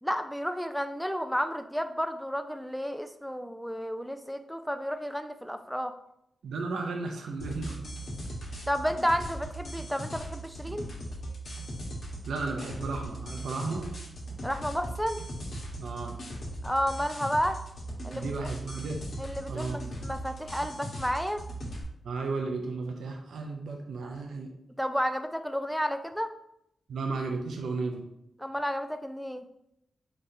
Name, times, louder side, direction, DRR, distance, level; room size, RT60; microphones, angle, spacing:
voice 1, 0.0-5.9 8.7-10.9 14.4-15.2 16.6-17.6 18.0-18.3 19.2-21.4 24.8-26.3 28.4-29.4, equal, ahead, 8 dB, 0.4 m, -31 dB
voice 2, 6.4-7.8 12.3-13.9 15.8-16.2 18.1-19.0 19.5-19.8 22.0-24.5 26.9-28.0, right 3 dB, 80° right, 3 dB, 0.5 m, -34 dB
sound 1, 7.4-21.8, right 1 dB, 70° left, 1.2 m, -39 dB
4.0 x 3.3 x 2.6 m, 0.77 s
supercardioid pair, 45°, 0 cm